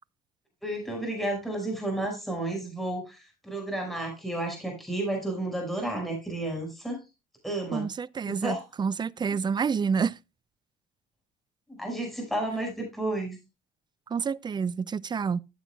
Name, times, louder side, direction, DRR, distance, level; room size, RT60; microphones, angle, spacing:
voice 1, 0.6-7.0 7.4-7.9 8.3-8.6 11.8-13.4, right 1 dB, ahead, 5.4 m, -32 dB
voice 2, 7.7-10.1 14.1-15.4, right 6 dB, 25° right, 0.4 m, -28 dB
14.0 x 7.9 x 2.3 m
cardioid pair, 110°, 17 cm